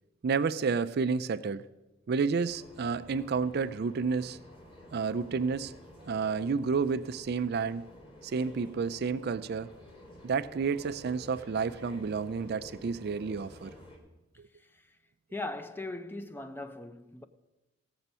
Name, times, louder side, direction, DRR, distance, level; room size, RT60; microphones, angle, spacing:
voice 1, 0.2-1.6 2.1-4.4 4.9-5.7 6.1-7.9 8.2-9.7 10.2-13.7, right 5 dB, 55° right, 0.4 m, -30 dB
sound 1, 2.5-14.0, left 1 dB, 25° left, 2.4 m, -51 dB
voice 2, 15.3-17.2, left 2 dB, 10° left, 0.5 m, -39 dB
16.5 x 7.1 x 5.5 m
head